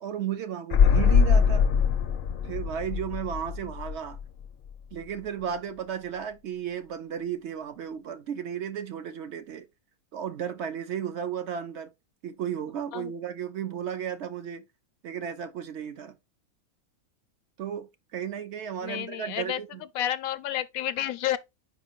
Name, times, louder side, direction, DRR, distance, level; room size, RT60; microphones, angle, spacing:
voice 1, 0.0-1.7 2.4-4.2 4.9-9.7 10.1-11.9 12.2-14.6 15.0-16.2 17.6-19.8, right 8 dB, 60° right, 0.8 m, -34 dB
sound 1, 0.7-4.5 4.7-4.8, left 6 dB, 55° left, 0.6 m, -22 dB
voice 2, 18.8-19.6 19.9-21.4, left 12 dB, 80° left, 1.0 m, -30 dB
5.0 x 4.9 x 3.9 m
omnidirectional pair, 1.5 m